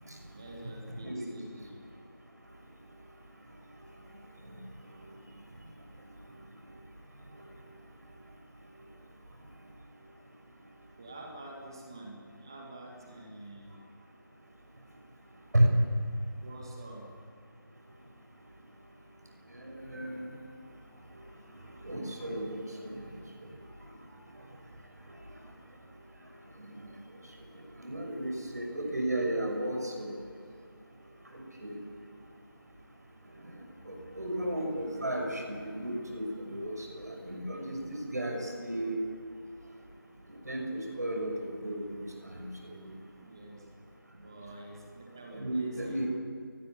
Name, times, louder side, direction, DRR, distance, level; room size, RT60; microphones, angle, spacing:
voice 1, 0.0-1.7 11.0-13.7 16.4-17.1 20.6-20.8 43.2-43.7 44.1-46.2, right 1 dB, 10° right, 0 dB, 1.8 m, -48 dB
voice 2, 19.6-20.3 21.8-22.9 27.8-30.1 31.6-31.8 33.9-37.8 38.1-39.0 40.5-42.5 42.7-42.9 45.3-46.1, right 1 dB, 45° right, 2 dB, 6.4 m, -33 dB
23.0 x 19.0 x 9.1 m, 2.5 s
figure-of-eight pair, 175°, 12 cm